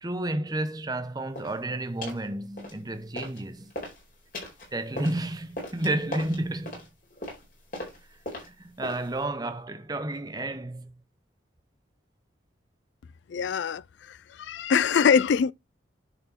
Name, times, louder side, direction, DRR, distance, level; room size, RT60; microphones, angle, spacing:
voice 1, 0.0-3.7 4.7-6.8 8.5-10.9, right 1 dB, 20° right, 0.8 m, -31 dB
sound 1, 1.3-1.6 2.0-2.3 2.6-3.4 3.7-9.2, left 1 dB, 45° left, 4.6 m, -39 dB
voice 2, 13.3-13.8 14.4-15.5, left 6 dB, 70° left, 0.3 m, -22 dB
10.5 x 4.3 x 4.3 m
head